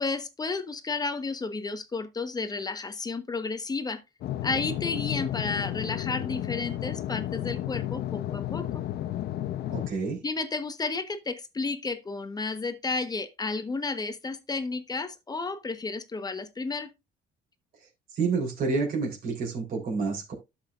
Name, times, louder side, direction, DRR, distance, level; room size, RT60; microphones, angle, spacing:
voice 1, 0.0-4.0 4.4-8.8 10.2-16.9, left 3 dB, 25° left, 1.1 m, -32 dB
sound 1, 4.2-9.9, left 13 dB, 70° left, 0.8 m, -32 dB
voice 2, 9.7-10.2 17.8-20.3, right 4 dB, 60° right, 3.9 m, -29 dB
11.5 x 7.4 x 2.5 m
cardioid pair, 110°, 17 cm